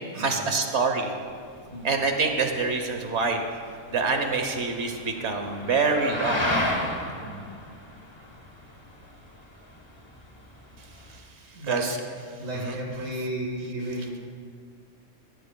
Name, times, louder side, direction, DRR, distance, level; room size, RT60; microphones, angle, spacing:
voice 1, 0.1-1.1 1.8-3.4 3.9-6.5 11.7-12.0 12.6-12.7, right 4 dB, 60° right, 5 dB, 1.3 m, -25 dB
sound 1, 1.3-11.2, left 1 dB, 20° left, 1.3 m, -34 dB
voice 2, 12.4-14.3, right 1 dB, 85° right, -3 dB, 2.0 m, -34 dB
16.0 x 15.5 x 2.3 m, 2.2 s
omnidirectional pair, 1.3 m